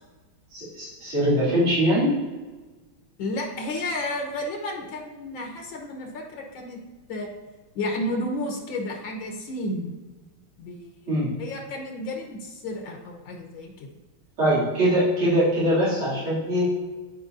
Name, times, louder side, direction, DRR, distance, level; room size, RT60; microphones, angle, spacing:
voice 1, 0.5-2.1 11.1-11.3 14.4-16.7, equal, 80° right, -9 dB, 3.5 m, -22 dB
voice 2, 3.2-6.8 7.1-7.3 7.7-10.0 10.6-11.1 11.4-13.9, left 1 dB, 75° left, 1 dB, 1.8 m, -32 dB
12.5 x 4.8 x 2.6 m, 1.3 s
omnidirectional pair, 2.3 m